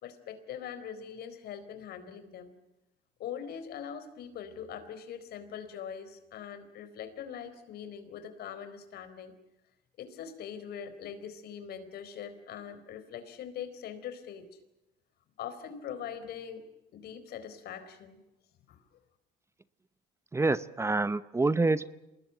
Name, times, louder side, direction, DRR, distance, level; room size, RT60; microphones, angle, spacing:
voice 1, 0.0-2.5 3.2-9.3 10.0-14.6 15.4-16.6 16.9-18.2 18.7-18.8, left 8 dB, 70° left, 11 dB, 4.2 m, -42 dB
voice 2, 20.3-21.9, right 3 dB, 15° right, 15 dB, 0.8 m, -27 dB
27.5 x 20.0 x 9.1 m, 0.94 s
cardioid pair, 110°, 17 cm